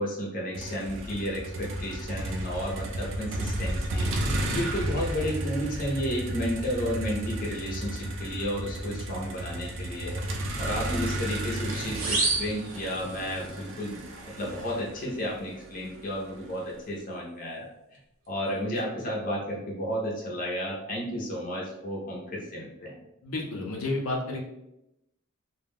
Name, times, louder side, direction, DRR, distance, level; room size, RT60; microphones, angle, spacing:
voice 1, 0.0-4.1 4.5-10.2 10.6-14.0 14.3-17.7 18.3-23.0, equal, 40° left, -3 dB, 0.6 m, -32 dB
Motor vehicle (road), 0.5-16.7, right 1 dB, 65° right, 0.4 m, -33 dB
sound 1, 11.9-13.5, right 3 dB, 85° right, 0.9 m, -30 dB
voice 2, 23.2-24.4, left 2 dB, 90° left, 0 dB, 0.6 m, -31 dB
2.3 x 2.2 x 3.4 m, 0.85 s
head